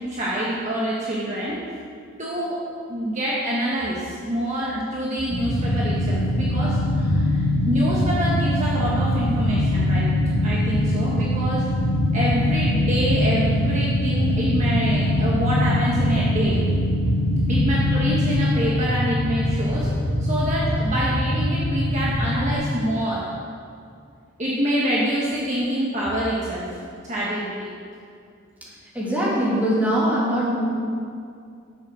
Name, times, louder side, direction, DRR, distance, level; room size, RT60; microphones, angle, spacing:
voice 1, 0.0-1.6 2.2-2.6 2.9-10.1 10.4-11.7 12.1-16.6 17.5-19.9 20.2-23.2 24.4-26.7 27.0-27.7, right 1 dB, 35° right, -6 dB, 1.5 m, -26 dB
sound 1, 5.3-22.5, left 1 dB, 20° left, 2.8 m, -22 dB
voice 2, 28.9-30.7, equal, 10° right, -8 dB, 3.1 m, -22 dB
11.0 x 7.6 x 6.3 m, 2.3 s
head